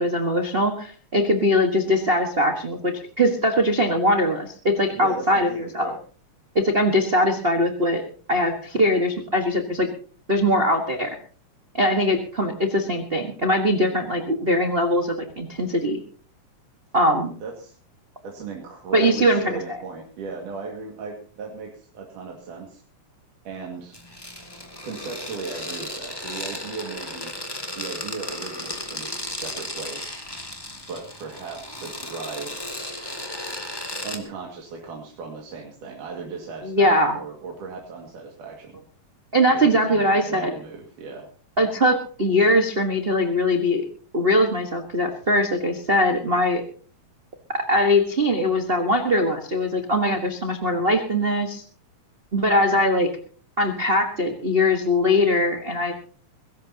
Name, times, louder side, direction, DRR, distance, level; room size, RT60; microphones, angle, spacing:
voice 1, 0.0-5.9 6.5-8.0 8.3-9.9 10.3-11.2 11.7-16.0 16.9-17.3 18.9-19.8 36.6-37.2 39.3-40.5 41.6-43.8 44.1-46.6 47.5-51.6 52.3-53.1 53.6-55.9, left 1 dB, 50° right, 3 dB, 0.6 m, -21 dB
voice 2, 5.0-6.0 17.4-17.8 18.2-22.8 23.5-24.0 24.8-27.3 27.7-30.2 30.9-32.5 34.0-38.7 39.5-41.3, right 4 dB, 75° right, 0 dB, 3.6 m, -37 dB
sound 1, 23.9-34.2, left 1 dB, 10° left, 1.4 m, -35 dB
21.5 x 17.0 x 2.9 m, 0.43 s
omnidirectional pair, 3.7 m